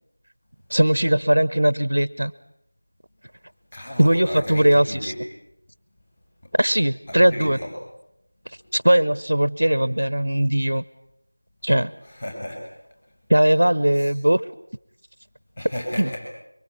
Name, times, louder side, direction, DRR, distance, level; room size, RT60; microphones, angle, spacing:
voice 1, 0.7-2.3 4.0-5.1 6.6-7.6 8.7-10.8 11.6-11.9 13.3-14.5 16.0-16.1, right 1 dB, 70° right, 16 dB, 1.0 m, -19 dB
voice 2, 3.7-5.2 7.1-7.7 12.0-12.7 14.0-14.1 15.6-16.2, equal, 25° left, 0 dB, 7.0 m, -33 dB
25.5 x 24.0 x 8.5 m, 0.79 s
figure-of-eight pair, 175°, 0 cm